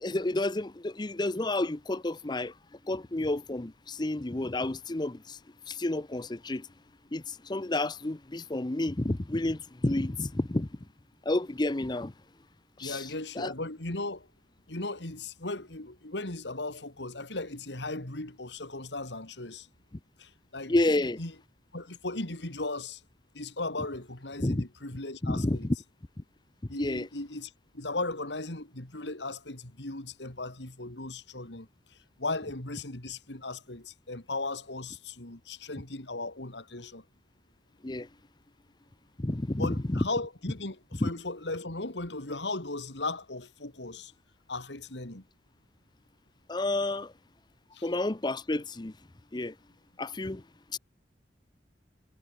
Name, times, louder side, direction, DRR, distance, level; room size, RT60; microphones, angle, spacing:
voice 1, 0.0-2.5 2.8-5.4 5.7-6.7 7.1-10.7 11.2-12.1 12.8-13.5 20.7-21.2 24.4-24.6 25.2-25.8 26.8-27.1 37.8-38.1 39.2-40.0 41.0-41.1 46.5-47.1 47.8-48.9 49.3-49.5 50.0-50.4 50.7-50.8, left 2 dB, 25° left, 0.7 m, -30 dB
voice 2, 12.8-14.3 14.7-19.7 20.2-20.7 21.2-21.3 21.7-23.0 23.3-25.7 26.7-37.0 39.6-44.1 44.5-45.2 47.7-47.9, left 2 dB, 90° left, 3.3 m, -37 dB
head